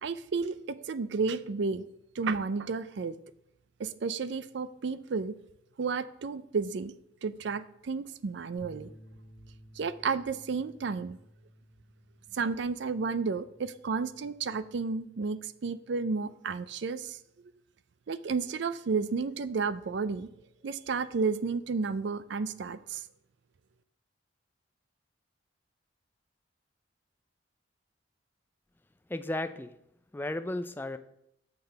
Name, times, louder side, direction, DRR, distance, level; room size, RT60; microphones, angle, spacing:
voice 1, 0.0-1.8 2.2-3.2 3.8-5.4 5.8-6.9 7.2-8.9 9.8-11.2 12.3-17.2 18.1-20.3 20.6-23.0, right 4 dB, 60° right, 15 dB, 0.4 m, -32 dB
sound 1, 8.6-14.8, equal, 65° left, 1.4 m, -56 dB
voice 2, 29.1-29.7 30.1-31.0, left 1 dB, 10° left, 10 dB, 0.3 m, -34 dB
6.8 x 5.9 x 5.3 m, 0.78 s
head